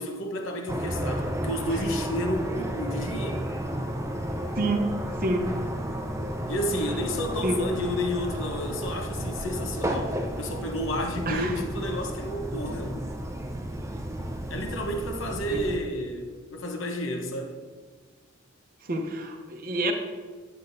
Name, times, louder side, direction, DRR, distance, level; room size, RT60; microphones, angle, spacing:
voice 1, 0.0-3.5 6.5-13.0 14.5-17.6, left 1 dB, 65° left, 3 dB, 1.0 m, -31 dB
sound 1, 0.7-15.8, right 1 dB, 15° right, 0.6 m, -32 dB
voice 2, 4.6-5.5 7.4-7.7 11.3-11.5 15.5-15.6 18.9-19.9, right 1 dB, 45° right, 3 dB, 0.8 m, -28 dB
10.5 x 7.8 x 2.6 m, 1.5 s
head